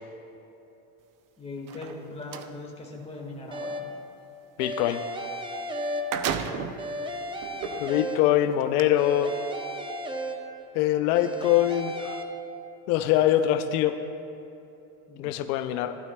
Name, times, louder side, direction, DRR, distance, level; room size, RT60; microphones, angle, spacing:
voice 1, 1.4-3.8 6.2-6.7 15.1-15.4, left 2 dB, 15° left, 0 dB, 1.7 m, -40 dB
sound 1, 1.6-2.5 5.4-5.5 5.8-6.9 7.6-7.7 8.6-8.8, right 8 dB, 45° right, 0.7 m, -32 dB
sound 2, 3.5-4.1 4.6-6.5 6.8-8.6 9.0-10.8 11.1-12.2, equal, 10° right, 0.7 m, -34 dB
voice 2, 4.6-5.0 7.8-9.3 10.7-12.2 12.9-14.0 15.2-16.0, left 12 dB, 85° left, 9 dB, 0.6 m, -23 dB
sound 3, 7.4-14.0, right 4 dB, 75° right, 1.5 m, -47 dB
15.5 x 12.0 x 2.3 m, 2.9 s
cardioid pair, 125°, 44 cm